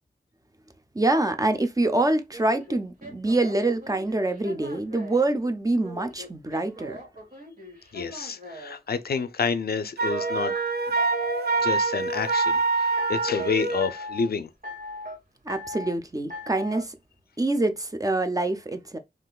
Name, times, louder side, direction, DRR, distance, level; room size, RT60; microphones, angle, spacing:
voice 1, 0.9-7.0 15.5-16.9 17.4-19.0, right 2 dB, 20° right, 0.5 m, -25 dB
sound 1, 2.3-5.3 5.8-8.8 10.0-11.7 12.1-12.6 13.0-13.5 13.8-14.3 14.6-15.2 15.5-15.9 16.3-16.8, left 1 dB, 60° right, 1.9 m, -38 dB
voice 2, 7.9-10.5 11.6-14.5, left 5 dB, 70° left, 0.4 m, -29 dB
Wind instrument woodwind instrument, 10.0-13.9, right 4 dB, 80° right, 0.4 m, -25 dB
3.7 x 2.5 x 2.3 m
wide cardioid pair, 60°, 17 cm